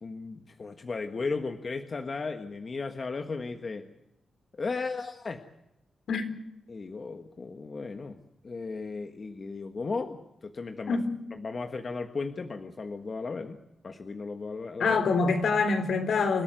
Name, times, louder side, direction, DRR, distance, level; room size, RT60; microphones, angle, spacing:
voice 1, 0.0-3.9 4.5-5.4 6.7-11.0 11.4-13.6 13.8-15.0, left 4 dB, 35° left, 7 dB, 1.5 m, -35 dB
voice 2, 14.8-16.4, left 4 dB, 65° left, 8 dB, 3.8 m, -25 dB
29.0 x 13.0 x 9.3 m, 0.88 s
wide cardioid pair, 125°, 0 cm